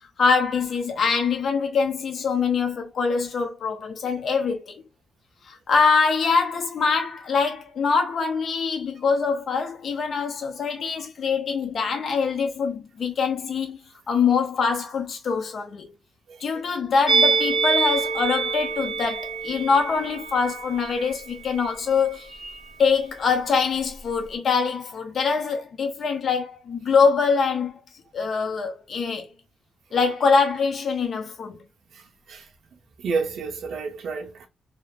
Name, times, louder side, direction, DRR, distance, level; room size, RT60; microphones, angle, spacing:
voice 1, 0.2-4.8 5.5-13.8 14.1-15.9 16.4-22.3 22.8-27.8 28.1-29.3 29.9-31.6, left 5 dB, 55° left, 0.6 m, -24 dB
Musical instrument, 17.1-22.3 22.6-22.8, right 4 dB, 30° left, 1.0 m, -26 dB
voice 2, 32.0-32.4 33.0-34.5, right 4 dB, 70° right, 0.8 m, -30 dB
3.0 x 2.0 x 2.3 m
cardioid pair, 110°, 0 cm